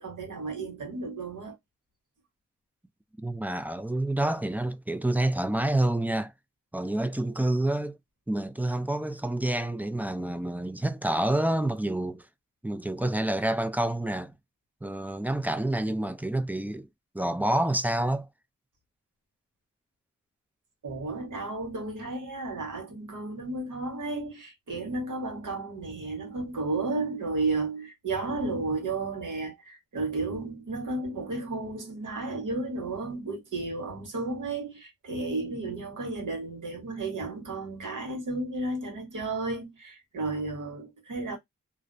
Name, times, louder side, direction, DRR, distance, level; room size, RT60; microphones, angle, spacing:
voice 1, 0.0-1.6 20.8-41.4, right 3 dB, 85° right, 1.2 m, -33 dB
voice 2, 3.2-6.3 6.7-8.0 8.3-12.3 12.6-14.3 14.8-16.9 17.1-18.3, right 1 dB, 5° right, 0.3 m, -28 dB
2.4 x 2.0 x 2.5 m
cardioid pair, 50°, 30 cm